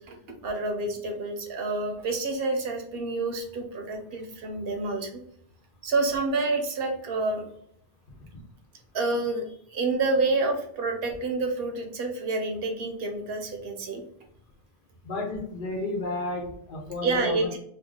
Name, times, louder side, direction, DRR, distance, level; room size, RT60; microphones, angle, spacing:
voice 1, 0.4-5.1 5.8-7.4 8.9-9.4 9.7-14.0 17.0-17.6, right 3 dB, 70° right, 3 dB, 0.9 m, -28 dB
voice 2, 15.0-17.5, left 2 dB, 55° left, 0 dB, 1.0 m, -32 dB
2.8 x 2.3 x 3.6 m, 0.69 s
omnidirectional pair, 1.0 m